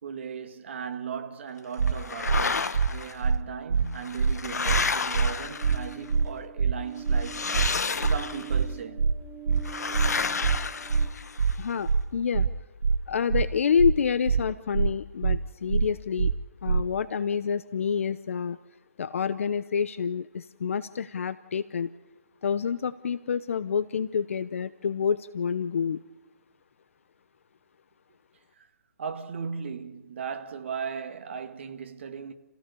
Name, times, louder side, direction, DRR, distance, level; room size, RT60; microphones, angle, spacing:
voice 1, 0.0-7.4 8.0-9.1 28.6-28.7 29.0-32.3, right 6 dB, 45° right, 1.9 m, -37 dB
sound 1, 1.8-1.9 2.3-2.4 2.7-2.9 3.2-3.4 3.7-3.9 4.2-4.3 4.7-4.8 5.1-5.3 5.6-5.8 6.1-6.3 6.6-6.7 7.1-7.2 7.5-7.7 8.0-8.2 8.5-8.7 9.0-9.1 9.5-9.6 9.9-10.1 10.4-10.6 10.9-11.1 11.4-11.5 11.9-12.0 12.3-12.5 12.8-13.0 13.3-13.5 13.8-13.9 14.3-14.4 14.7-14.9 15.2-15.4 15.7-15.9 16.2-16.3 16.7-16.8, right 5 dB, 85° right, 0.8 m, -23 dB
sound 2, 1.9-3.1 3.9-6.1 7.2-8.6 9.6-11.5, left 4 dB, 80° left, 1.6 m, -31 dB
sound 3, 5.3-11.1, right 10 dB, ahead, 1.5 m, -45 dB
voice 2, 11.6-12.5 13.1-16.3 16.6-18.6 19.0-21.9 22.4-26.0, left 7 dB, 50° left, 0.8 m, -28 dB
29.5 x 16.5 x 6.9 m
hypercardioid pair, 165°, 9 cm